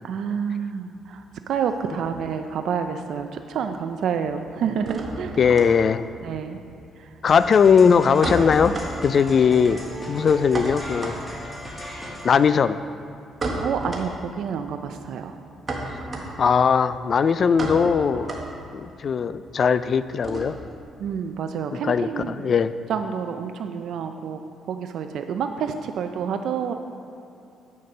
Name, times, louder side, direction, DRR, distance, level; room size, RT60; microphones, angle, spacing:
voice 1, 0.0-5.4 6.2-6.6 7.0-7.1 13.6-15.4 21.0-22.5 22.9-24.4 24.7-26.7, right 7 dB, 75° right, 7 dB, 0.4 m, -28 dB
sound 1, 1.0-2.6 2.8-3.5 3.8-20.8, right 2 dB, 35° right, 1.5 m, -34 dB
voice 2, 5.4-6.0 7.2-8.7 9.0-11.1 12.2-12.8 16.4-18.3 18.7-20.6 21.8-22.7, left 6 dB, 50° left, 13 dB, 0.3 m, -19 dB
sound 2, 7.3-12.5, equal, 15° left, 1.9 m, -36 dB
8.6 x 6.4 x 5.5 m, 2.6 s
cardioid pair, 90°, 0 cm